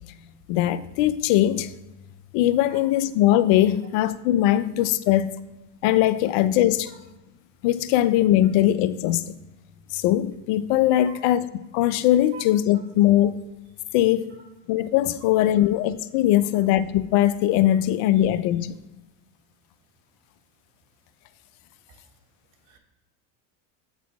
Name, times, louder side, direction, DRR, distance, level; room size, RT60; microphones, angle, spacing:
voice 1, 0.5-1.7 2.3-5.4 5.8-6.9 7.6-9.3 9.9-11.4 11.7-13.3 13.9-14.3 14.7-18.7, left 13 dB, 60° left, 0.6 m, -21 dB
voice 2, 2.7-2.8 6.9-7.0 11.0-11.2 12.3-12.4 14.3-14.4 15.5-15.6 18.1-18.2 21.9-22.1 22.6-22.8, right 8 dB, 70° right, 1.8 m, -47 dB
8.0 x 4.1 x 4.7 m
supercardioid pair, 95°, 49 cm